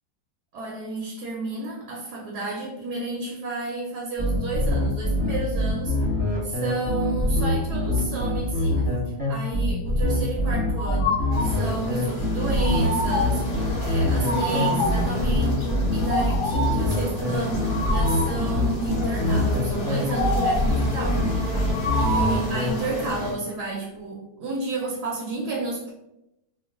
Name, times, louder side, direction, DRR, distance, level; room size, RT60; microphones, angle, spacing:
voice 1, 0.5-6.0 6.2-13.5 13.8-21.2 22.0-25.9, right 3 dB, 70° right, -1 dB, 1.1 m, -31 dB
sound 1, 4.2-22.7, left 1 dB, 5° right, 0.8 m, -24 dB
sound 2, 10.8-11.6 12.6-13.5 14.2-15.1 16.0-16.9 17.7-18.4 20.1-20.8 21.7-22.5, left 1 dB, 70° left, 1.2 m, -27 dB
sound 3, 11.3-23.3, left 1 dB, 50° left, 1.0 m, -31 dB
3.0 x 2.2 x 3.5 m, 0.85 s
omnidirectional pair, 2.0 m